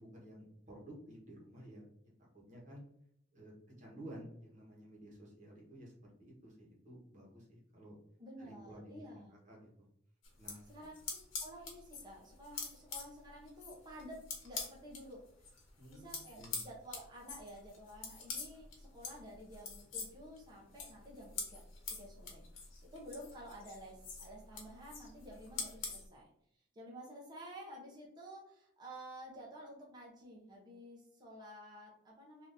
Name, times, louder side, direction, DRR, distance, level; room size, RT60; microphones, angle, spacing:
voice 1, 0.0-2.8 3.3-5.9 6.2-7.9 8.4-9.9 10.4-10.6 15.8-16.7, right 1 dB, 35° right, -3 dB, 1.2 m, -53 dB
voice 2, 8.2-9.4 10.7-10.9 11.4-15.5 15.9-21.6 21.9-26.3 26.5-32.5, equal, 20° right, -4 dB, 0.8 m, -52 dB
knitting and dropping metal knitting needle, 10.2-15.0 15.4-26.0, left 5 dB, 70° left, 1.1 m, -45 dB
3.7 x 2.7 x 2.7 m, 0.72 s
head